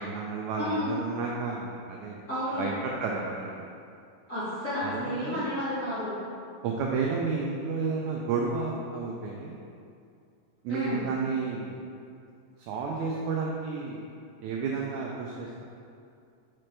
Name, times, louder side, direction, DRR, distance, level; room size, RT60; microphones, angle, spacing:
voice 1, 0.0-2.2 2.6-3.7 4.8-5.5 6.6-9.6 10.6-11.8 12.6-14.0 14.4-15.6, right 4 dB, 90° right, -2 dB, 1.6 m, -31 dB
voice 2, 0.6-0.9 2.3-2.7 4.3-6.1 10.7-11.0, left 1 dB, 35° left, -13 dB, 1.3 m, -31 dB
7.4 x 5.9 x 3.3 m, 2.4 s
omnidirectional pair, 4.0 m